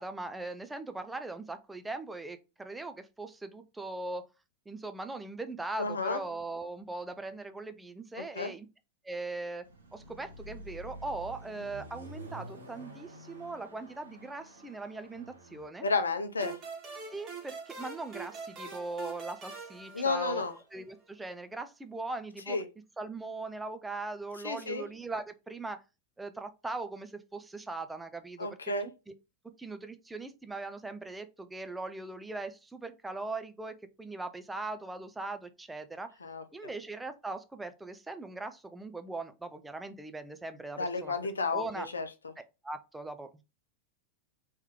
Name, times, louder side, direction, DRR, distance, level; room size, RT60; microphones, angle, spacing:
voice 1, 0.0-4.3 4.7-8.6 9.0-9.6 9.9-15.9 17.1-20.4 20.7-22.6 23.0-25.8 26.2-28.5 29.6-36.1 36.5-41.1 41.5-41.9 42.6-43.4, right 3 dB, 10° right, 0.4 m, -40 dB
voice 2, 5.8-6.2 8.4-8.5 15.8-16.6 19.9-20.5 22.5-22.6 24.4-24.9 28.4-28.9 36.2-36.4 40.8-42.1, left 3 dB, 75° left, 0.6 m, -31 dB
Car passing by / Accelerating revving vroom, 9.6-15.7, right 1 dB, 75° right, 0.9 m, -48 dB
sound 1, 16.4-20.8, right 5 dB, 30° right, 1.5 m, -44 dB
3.2 x 3.1 x 3.4 m
figure-of-eight pair, 90°, 0 cm